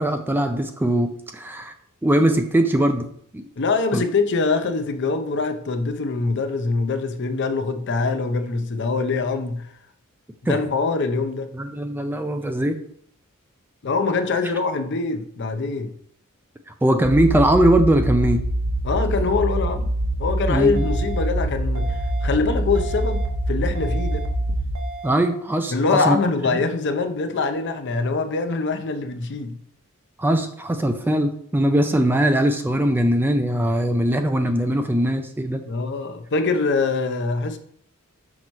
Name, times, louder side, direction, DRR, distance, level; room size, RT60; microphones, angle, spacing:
voice 1, 0.0-1.7 2.0-3.0 3.3-3.5 3.9-4.0 10.5-10.6 11.5-12.8 16.8-18.4 20.5-20.9 25.0-26.2 30.2-35.6, right 1 dB, 10° right, 0.4 m, -20 dB
voice 2, 3.6-9.6 10.4-11.5 13.8-15.9 18.8-19.9 20.2-24.3 25.7-29.6 35.6-37.6, left 4 dB, 55° left, 0.6 m, -24 dB
sound 1, 17.0-24.8, right 1 dB, 10° left, 0.7 m, -24 dB
sound 2, 20.8-21.3 21.8-22.3 22.8-23.3 23.8-24.3 24.8-25.3, right 4 dB, 60° right, 1.0 m, -36 dB
6.1 x 3.0 x 5.2 m
head